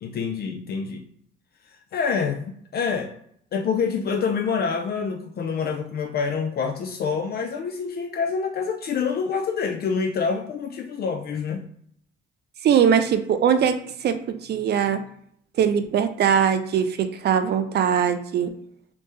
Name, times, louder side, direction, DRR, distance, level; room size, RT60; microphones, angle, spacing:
voice 1, 0.0-1.1 1.7-3.1 3.5-11.7, left 5 dB, 50° left, 3 dB, 0.4 m, -27 dB
voice 2, 12.6-13.8 14.0-15.0 15.6-18.5, right 8 dB, 55° right, 10 dB, 0.4 m, -21 dB
3.3 x 2.0 x 3.1 m, 0.66 s
cardioid pair, 90°, 20 cm